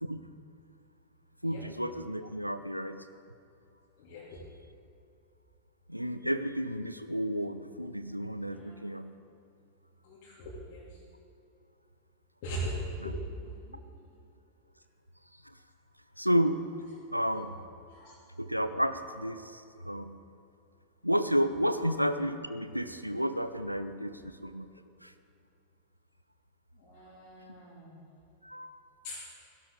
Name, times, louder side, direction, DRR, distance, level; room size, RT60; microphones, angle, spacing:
voice 1, 1.4-3.0 5.9-9.1 13.0-13.1 15.5-15.6 16.2-16.7 17.1-17.5 18.4-20.2 21.0-24.7 25.0-25.1 28.4-28.8, equal, 90° right, 10 dB, 0.5 m, -31 dB
voice 2, 4.0-4.4 8.5-8.8 10.0-10.8 12.4-12.7 13.7-13.8 17.9-18.1 26.8-28.1 29.0-29.2, right 1 dB, 45° left, -9 dB, 3.1 m, -41 dB
17.0 x 12.0 x 3.8 m, 2.6 s
figure-of-eight pair, 90°, 0 cm